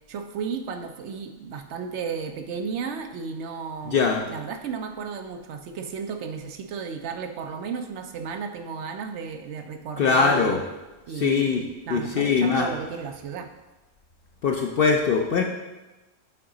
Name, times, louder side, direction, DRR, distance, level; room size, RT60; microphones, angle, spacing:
voice 1, 0.1-10.6 11.1-13.5, right 6 dB, 70° right, 6 dB, 0.8 m, -34 dB
voice 2, 3.9-4.2 10.0-10.6 11.1-11.6 11.9-12.7 14.4-15.4, left 5 dB, 65° left, 2 dB, 0.6 m, -21 dB
7.8 x 4.0 x 3.7 m, 1.1 s
omnidirectional pair, 1.3 m